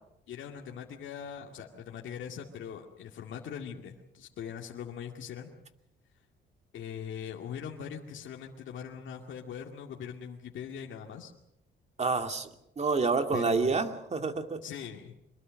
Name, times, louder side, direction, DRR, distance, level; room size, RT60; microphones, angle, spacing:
voice 1, 0.3-5.5 6.7-11.3 13.3-13.9 14.6-15.2, left 8 dB, 75° left, 0 dB, 2.2 m, -41 dB
voice 2, 12.0-12.5 12.8-14.6, right 4 dB, 35° right, 6 dB, 2.4 m, -28 dB
25.0 x 21.5 x 6.5 m, 0.84 s
cardioid pair, 90°, 20 cm